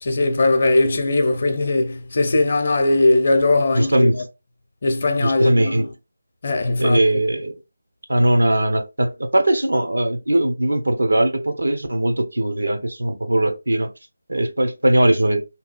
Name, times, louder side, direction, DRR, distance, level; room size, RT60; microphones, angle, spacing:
voice 1, 0.0-4.2 4.8-5.9 6.4-7.0, left 2 dB, 45° left, 0.5 m, -19 dB
voice 2, 3.7-4.2 5.2-5.9 6.8-7.5 8.1-13.9 14.3-15.4, right 1 dB, 70° right, 0.6 m, -19 dB
2.7 x 2.3 x 2.5 m
figure-of-eight pair, 155°, 0 cm